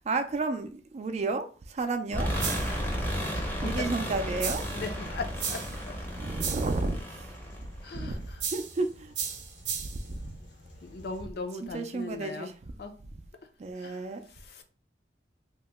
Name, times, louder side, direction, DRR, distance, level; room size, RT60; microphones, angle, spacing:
voice 1, 0.0-2.3 3.6-4.8 6.2-7.3 7.9-8.2 8.5-9.1 9.8-10.3 11.6-12.5 13.6-14.2, right 3 dB, 40° right, 0.3 m, -32 dB
sound 1, 2.1-8.2, equal, 10° left, 0.6 m, -33 dB
sound 2, 2.4-2.8 4.4-4.8 5.4-5.8 6.4-6.8 8.4-8.8 9.1-10.1, right 7 dB, 75° right, 0.6 m, -34 dB
sound 3, 3.1-11.3, left 1 dB, 80° left, 0.8 m, -53 dB
voice 2, 3.3-4.1 4.7-6.0 7.8-8.4 10.8-12.5 12.8-12.9 13.7-14.6, left 3 dB, 60° left, 0.5 m, -39 dB
2.8 x 2.1 x 3.3 m
head